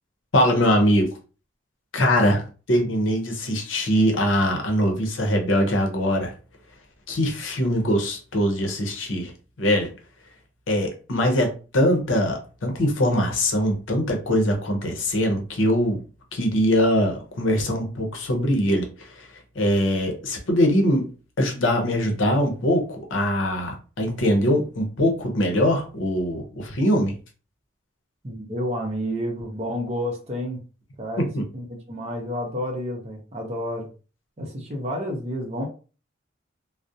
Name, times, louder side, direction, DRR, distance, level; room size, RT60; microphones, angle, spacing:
voice 1, 0.3-1.1 1.9-6.3 7.1-9.3 9.6-9.9 10.7-16.0 16.3-19.3 19.6-21.1 21.4-27.1, equal, 70° left, 3 dB, 0.6 m, -22 dB
voice 2, 28.2-30.6 31.0-33.9 34.4-35.7, equal, 30° right, 0 dB, 0.6 m, -30 dB
2.4 x 2.0 x 2.6 m, 0.35 s
head